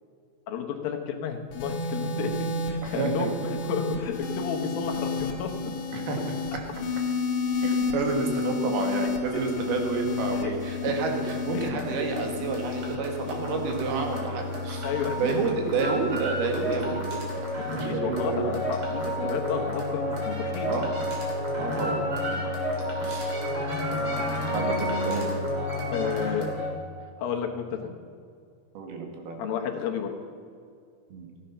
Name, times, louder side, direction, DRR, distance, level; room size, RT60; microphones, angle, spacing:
voice 1, 0.5-5.5 9.3-9.4 10.3-10.5 11.5-11.7 14.8-15.2 17.4-20.7 21.5-21.6 25.9-26.5 27.2-28.0 29.4-30.1, left 7 dB, 75° left, 3 dB, 2.8 m, -32 dB
sound 1, 1.5-18.0 18.9-19.2, left 4 dB, 60° left, 2.9 m, -32 dB
voice 2, 2.8-3.3 5.9-6.2 7.6-14.9 15.2-17.2 17.7-18.5 19.2-19.3 20.7-20.9 21.6-22.0 22.3-22.5 23.0-23.4 24.5-25.3 28.8-29.4 31.1-31.3, right 4 dB, 80° right, 2 dB, 3.6 m, -29 dB
sound 2, 9.4-26.8, left 1 dB, 40° right, 3.1 m, -31 dB
15.0 x 9.8 x 5.6 m, 2.3 s
omnidirectional pair, 4.4 m